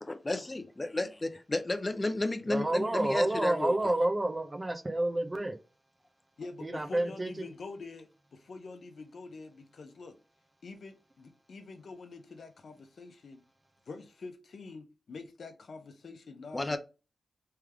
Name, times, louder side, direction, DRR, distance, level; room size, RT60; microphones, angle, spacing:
voice 1, 0.0-3.7 16.5-16.8, left 2 dB, 30° left, 0.6 m, -32 dB
voice 2, 2.5-5.6 6.6-7.3, right 1 dB, 30° right, 0.8 m, -29 dB
voice 3, 6.4-10.2 10.6-13.4 13.9-16.8, left 3 dB, 70° left, 0.8 m, -46 dB
3.3 x 3.3 x 3.5 m
cardioid pair, 50°, 0 cm